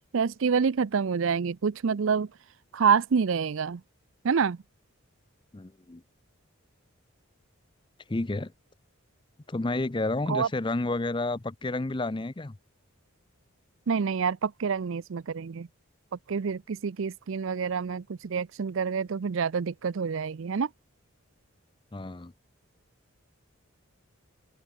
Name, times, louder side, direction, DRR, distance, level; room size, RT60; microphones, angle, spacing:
voice 1, 0.1-2.3 2.7-3.8 4.2-4.6 10.3-10.5 13.9-15.7 16.3-20.7, right 6 dB, 65° right, 0.5 m, -27 dB
voice 2, 5.5-6.0 8.1-8.5 9.5-12.6 21.9-22.3, left 2 dB, 20° left, 0.5 m, -30 dB
head